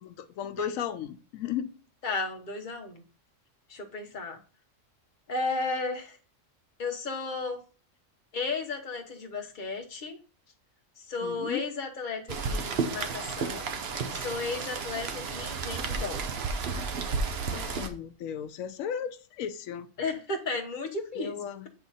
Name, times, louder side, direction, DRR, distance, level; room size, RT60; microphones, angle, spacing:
voice 1, 0.0-1.7 11.2-11.6 17.5-19.9 21.2-21.7, left 9 dB, 90° left, 10 dB, 1.0 m, -35 dB
voice 2, 2.0-3.0 3.7-4.4 5.3-6.2 6.8-7.6 8.3-10.2 11.0-13.7 14.1-16.2 20.0-21.4, left 3 dB, 40° left, 2 dB, 1.2 m, -34 dB
Rain, 12.3-17.9, right 4 dB, 55° right, 0.9 m, -32 dB
8.1 x 3.6 x 4.0 m, 0.36 s
omnidirectional pair, 1.3 m